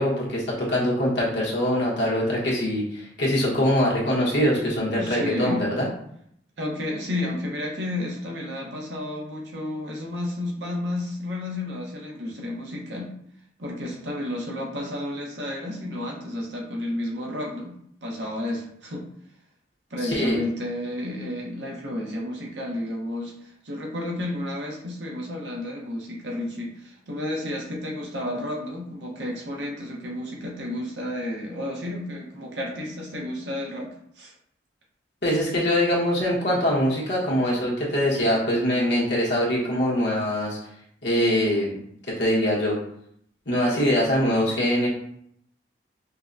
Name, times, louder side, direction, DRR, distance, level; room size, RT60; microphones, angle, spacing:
voice 1, 0.0-5.9 20.0-20.4 35.2-40.6 41.0-41.8 42.1-42.8 43.5-44.9, equal, 70° left, -5 dB, 1.2 m, -23 dB
voice 2, 4.9-5.6 6.6-13.1 13.6-17.7 18.0-19.0 19.9-33.9 34.2-34.3, left 1 dB, 70° right, -1 dB, 0.9 m, -31 dB
5.4 x 2.2 x 2.5 m, 0.69 s
head